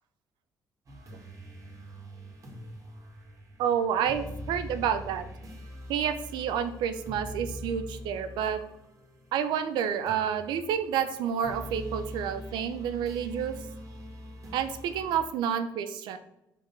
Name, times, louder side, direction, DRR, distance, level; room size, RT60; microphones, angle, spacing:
sound 1, 0.9-15.3, equal, 45° right, 2.1 m, -43 dB
voice 1, 3.6-5.2 5.9-8.6 9.3-13.5 14.5-16.2, right 8 dB, 90° right, 9 dB, 0.7 m, -29 dB
5.0 x 4.2 x 5.7 m, 0.84 s
cardioid pair, 100°, 7 cm